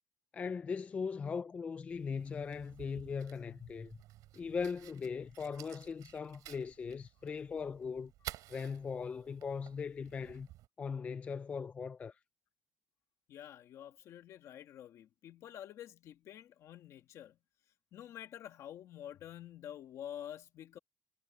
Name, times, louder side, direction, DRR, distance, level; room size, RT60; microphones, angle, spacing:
voice 1, 0.3-4.0 4.3-8.1 8.5-10.5 10.8-12.2, left 5 dB, 20° left, 0.3 m, -39 dB
Fire, 1.9-10.7, right 15 dB, 80° right, 3.0 m, -53 dB
voice 2, 13.3-17.4 17.9-20.8, left 11 dB, 55° left, 1.3 m, -48 dB
cardioid pair, 170°, 6 cm